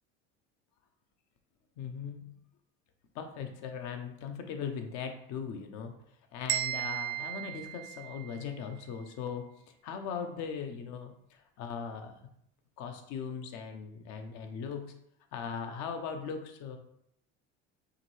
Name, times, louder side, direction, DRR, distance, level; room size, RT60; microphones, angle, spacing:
voice 1, 1.8-2.4 3.1-5.9 6.3-9.5 9.8-12.1 12.8-15.0 15.3-16.8, left 6 dB, 65° left, 6 dB, 0.9 m, -39 dB
sound 1, 6.5-8.5, right 12 dB, 45° right, 0.6 m, -35 dB
5.0 x 3.0 x 3.2 m, 0.73 s
supercardioid pair, 90°, 31 cm